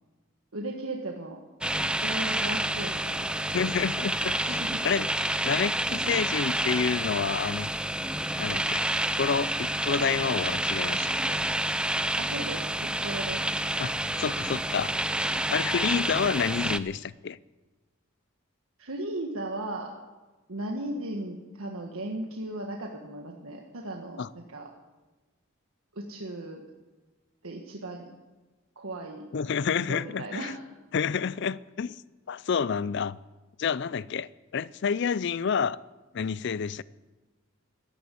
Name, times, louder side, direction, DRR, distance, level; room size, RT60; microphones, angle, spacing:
voice 1, 0.5-1.4 1.8-3.3 4.5-4.8 12.2-13.5 18.8-19.9 20.5-24.7 25.9-26.6 27.4-28.1 28.7-29.2 29.9-30.6, right 1 dB, 80° right, 1.6 m, -36 dB
sound 1, 1.6-16.8, right 1 dB, 5° right, 0.4 m, -29 dB
voice 2, 3.5-4.6 4.8-7.7 8.4-8.8 9.2-11.4 13.8-14.9 15.5-17.4 24.2-24.3 29.3-30.5 30.9-32.0 32.3-33.2 33.6-35.8 36.1-36.8, left 6 dB, 55° left, 0.4 m, -29 dB
13.0 x 13.0 x 8.3 m
head